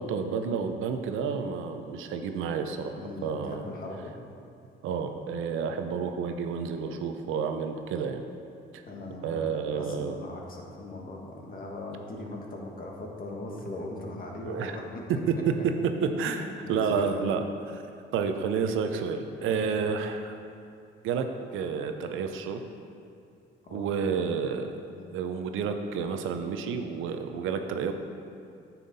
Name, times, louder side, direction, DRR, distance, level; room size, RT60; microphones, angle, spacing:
voice 1, 0.0-3.6 4.8-8.2 8.7-8.8 9.2-10.1 14.4-14.7 15.1-15.7 16.2-17.8 18.1-20.3 21.0-21.3 21.5-22.6 23.7-24.8 25.1-27.9, right 6 dB, 85° right, 6 dB, 0.7 m, -30 dB
voice 2, 3.0-4.1 8.8-15.0 15.6-15.7 16.1-17.1 19.5-19.7 23.6-24.4 24.9-25.1, left 2 dB, 45° left, -1 dB, 1.5 m, -40 dB
9.5 x 5.8 x 4.1 m, 2.5 s
cardioid pair, 90°, 20 cm